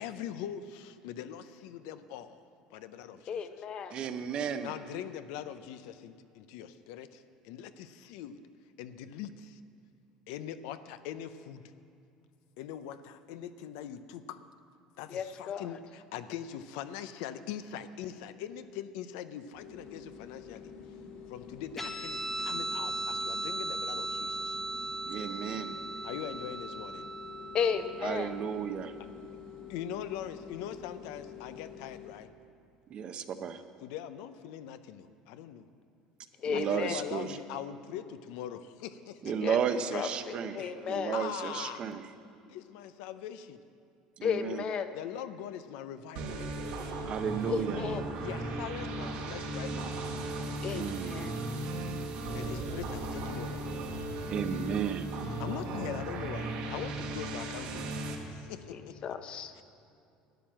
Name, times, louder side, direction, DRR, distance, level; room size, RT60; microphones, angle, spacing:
voice 1, 0.0-2.4 2.7-3.4 4.6-8.4 8.8-9.6 10.3-11.6 12.6-14.4 15.0-20.7 21.3-24.6 26.0-27.1 29.7-32.3 33.8-35.6 36.5-39.3 40.3-40.4 40.9-41.9 42.5-43.6 44.9-46.5 48.2-50.0 52.3-53.7 55.4-58.0 58.3-58.9 59.5-59.6, left 10 dB, 80° left, 11 dB, 0.6 m, -42 dB
voice 2, 3.3-3.9 15.1-15.7 27.5-28.3 36.4-37.0 39.4-39.6 39.9-41.1 44.2-44.9 47.5-48.1 50.6-51.4 58.7-59.5, left 7 dB, 40° left, 9 dB, 0.8 m, -34 dB
voice 3, 3.9-4.7 25.1-25.8 28.0-28.9 32.9-33.6 36.4-37.4 39.2-42.0 44.2-44.7 47.0-47.8 50.7-51.5 54.2-55.1, right 7 dB, 45° right, 9 dB, 0.7 m, -34 dB
sound 1, 19.5-32.2, left 7 dB, 65° left, 2.1 m, -48 dB
Guitar, 21.8-28.7, right 2 dB, 10° left, 1.0 m, -37 dB
sound 2, 46.2-58.2, right 2 dB, 75° right, 1.7 m, -36 dB
11.5 x 9.0 x 7.5 m, 2.6 s
cardioid pair, 125°, 2 cm